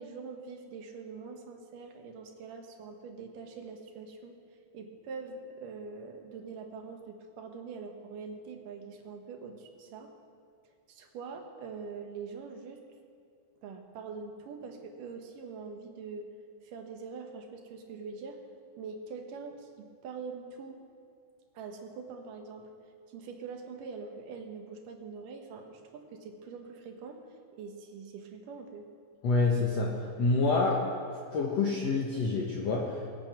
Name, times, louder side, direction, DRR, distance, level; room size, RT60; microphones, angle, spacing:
voice 1, 0.0-4.4 4.7-10.1 10.9-12.8 13.6-16.3 16.6-18.4 18.8-20.8 21.5-22.7 23.1-27.2 27.5-28.9, right 5 dB, 65° right, 3 dB, 2.6 m, -44 dB
voice 2, 29.2-30.8 31.3-33.1, left 3 dB, 60° left, -2 dB, 1.8 m, -27 dB
21.5 x 8.6 x 6.0 m, 2.2 s
omnidirectional pair, 4.4 m